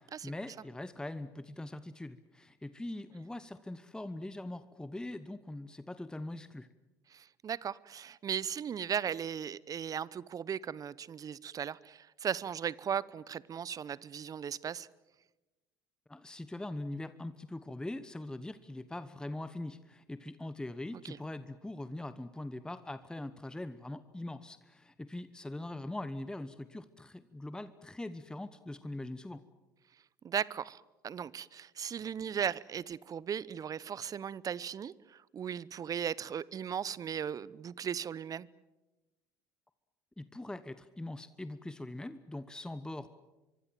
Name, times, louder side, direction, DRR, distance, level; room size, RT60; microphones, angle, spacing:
voice 1, 0.0-6.7 16.1-29.4 40.2-43.1, left 1 dB, 10° left, 1.1 m, -42 dB
voice 2, 7.1-14.9 21.0-21.2 30.2-38.5, right 8 dB, 35° right, 0.8 m, -37 dB
24.5 x 24.0 x 7.6 m
hypercardioid pair, 65°, 10 cm